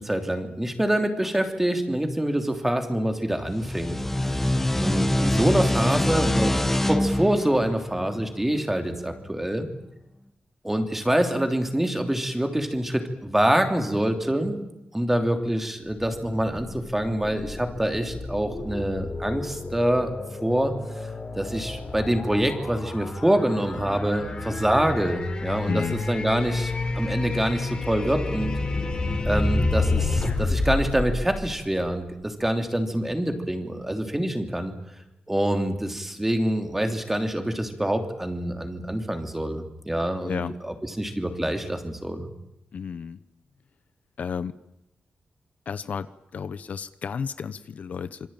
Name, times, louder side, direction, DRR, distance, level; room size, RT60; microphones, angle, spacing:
voice 1, 0.0-4.4 4.8-9.7 10.6-14.6 14.9-20.1 20.4-20.7 21.3-28.5 29.2-34.7 35.3-42.3, right 1 dB, 10° right, 5 dB, 3.2 m, -26 dB
sound 1, 3.5-8.8, left 1 dB, 10° left, 1.5 m, -25 dB
sound 2, 15.9-32.1, left 3 dB, 30° left, 4.2 m, -30 dB
voice 2, 25.5-26.0 40.2-40.6 42.7-43.2 44.2-44.6 45.7-48.3, left 6 dB, 60° left, 13 dB, 0.9 m, -32 dB
26.5 x 24.5 x 9.1 m, 0.87 s
wide cardioid pair, 150°, 3 cm